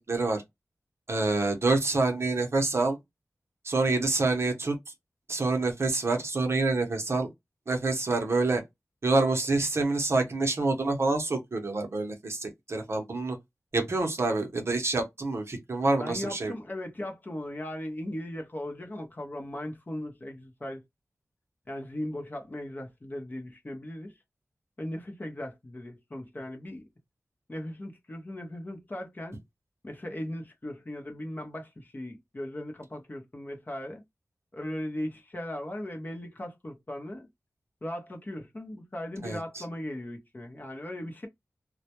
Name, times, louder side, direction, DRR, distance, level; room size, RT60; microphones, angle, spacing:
voice 1, 0.1-0.4 1.1-3.0 3.6-4.8 5.3-7.3 7.7-8.6 9.0-13.4 13.7-16.5 39.2-39.6, right 3 dB, 50° right, 0.7 m, -27 dB
voice 2, 16.0-20.8 21.7-24.1 24.8-26.9 27.5-29.4 29.8-34.0 34.5-37.3 37.8-41.3, left 1 dB, 35° left, 0.7 m, -38 dB
2.1 x 2.1 x 2.8 m
wide cardioid pair, 95°, 6 cm